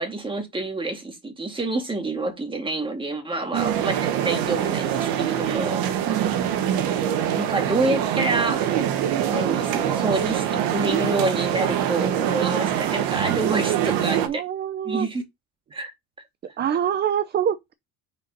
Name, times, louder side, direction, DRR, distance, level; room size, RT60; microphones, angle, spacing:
voice 1, 0.0-5.8 7.3-8.7 9.3-14.4 14.8-15.2 15.7-15.9, right 2 dB, 15° right, 2.0 m, -27 dB
voice 2, 3.5-3.9 6.1-6.6 14.2-15.1 16.4-17.7, right 9 dB, 30° right, 0.5 m, -26 dB
sound 1, 3.5-14.3, right 10 dB, 75° right, 1.3 m, -24 dB
5.0 x 4.0 x 5.3 m
cardioid pair, 125°, 35 cm